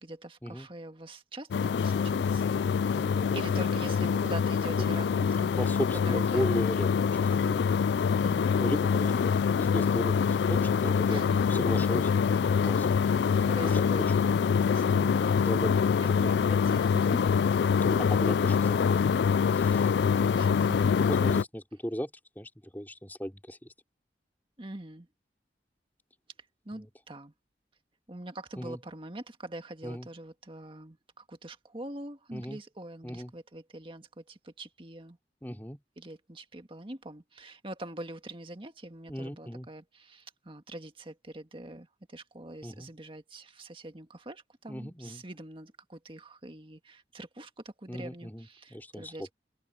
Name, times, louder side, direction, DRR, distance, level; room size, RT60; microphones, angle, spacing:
voice 1, 0.0-2.5 3.3-6.5 7.2-7.4 8.2-8.6 11.1-11.4 12.8-14.2 14.6-15.6 16.0-17.2 20.3-20.8 24.6-25.1 26.6-27.3 28.1-35.2 36.0-49.3, right 1 dB, 30° right, 1.8 m, -44 dB
sound 1, 1.5-21.4, left 6 dB, 70° left, 0.3 m, -25 dB
voice 2, 2.9-3.6 5.6-6.9 7.2-7.7 8.6-13.2 13.5-13.8 15.4-15.8 16.1-16.3 17.8-18.9 19.5-20.3 21.0-22.1 22.3-23.7 28.6-28.8 29.8-30.1 32.3-32.6 33.0-33.3 35.4-35.8 39.1-39.7 42.6-42.9 44.7-45.2 47.9-49.1, equal, 10° left, 3.1 m, -37 dB
head